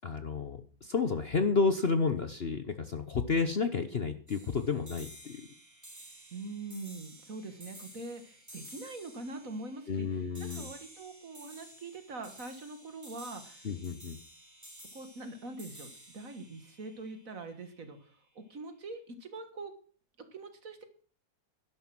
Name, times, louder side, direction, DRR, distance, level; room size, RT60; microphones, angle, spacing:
voice 1, 0.0-5.4 9.9-10.7 13.6-14.2, left 4 dB, 45° left, 9 dB, 0.8 m, -31 dB
sound 1, 4.3-17.7, right 1 dB, 10° right, 2.8 m, -52 dB
voice 2, 6.3-13.7 14.9-19.7 20.3-20.8, right 3 dB, 45° right, 8 dB, 1.9 m, -43 dB
12.0 x 11.0 x 6.0 m, 0.43 s
omnidirectional pair, 2.1 m